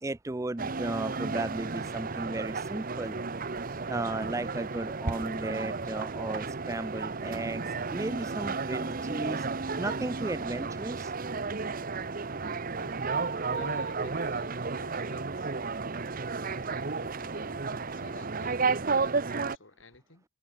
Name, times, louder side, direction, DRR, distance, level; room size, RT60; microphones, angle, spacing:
voice 1, 0.0-3.2 3.9-7.6 7.9-9.4 9.8-11.1, right 2 dB, 15° right, 0.4 m, -35 dB
sound 1, 0.6-19.6, right 4 dB, 45° right, 0.9 m, -33 dB
voice 2, 13.5-15.5 16.3-20.2, left 2 dB, 70° left, 4.0 m, -50 dB
head